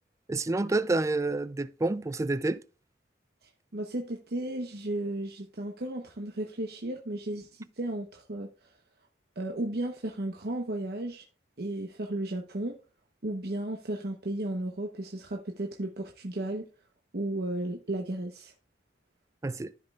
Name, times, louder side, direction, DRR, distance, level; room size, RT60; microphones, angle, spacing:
voice 1, 0.3-2.6 19.4-19.7, right 2 dB, 20° right, 0.3 m, -28 dB
voice 2, 3.7-8.5 9.4-11.2 11.6-12.7 13.2-16.7 17.1-18.5, right 1 dB, 60° right, 0.9 m, -34 dB
14.0 x 5.3 x 2.3 m
head